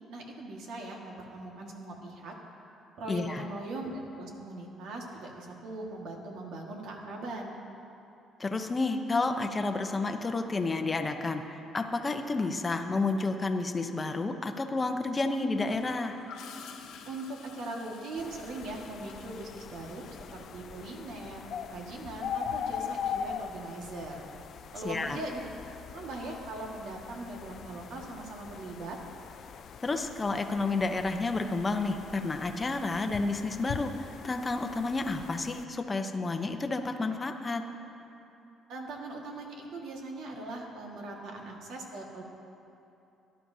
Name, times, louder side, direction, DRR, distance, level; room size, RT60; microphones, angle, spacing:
voice 1, 0.1-2.3 3.0-7.5 17.0-24.2 24.7-25.5 25.9-29.0 38.7-42.2, right 2 dB, 75° right, 0 dB, 1.7 m, -40 dB
voice 2, 3.1-3.5 8.4-16.1 24.8-25.2 29.8-37.6, left 3 dB, 20° left, 5 dB, 0.7 m, -30 dB
Gurgling / Toilet flush, 15.6-21.3 23.3-23.6, left 6 dB, 85° left, 0.9 m, -50 dB
sound 1, 18.2-35.6, left 8 dB, 55° left, 0.3 m, -41 dB
17.0 x 11.5 x 2.8 m, 2.9 s
cardioid pair, 125°, 0 cm